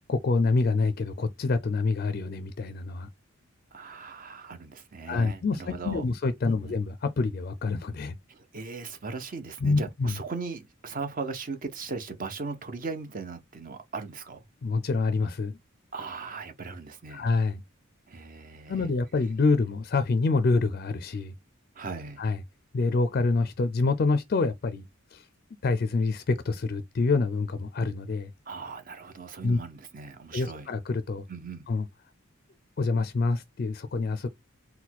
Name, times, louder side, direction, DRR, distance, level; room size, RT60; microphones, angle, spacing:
voice 1, 0.1-3.1 5.1-8.1 9.6-10.1 14.6-15.6 17.1-17.6 18.7-21.3 22.2-22.4 22.7-24.8 25.1-25.3 25.6-28.3 29.4-29.6 30.3-31.2 31.7-31.9 32.8-34.3, left 3 dB, 45° left, 0.4 m, -26 dB
voice 2, 3.7-6.0 6.4-6.8 8.3-14.4 15.9-17.3 18.1-18.9 21.8-22.2 28.5-30.7 31.3-31.7, right 4 dB, 40° right, 0.6 m, -38 dB
4.1 x 2.2 x 4.1 m
head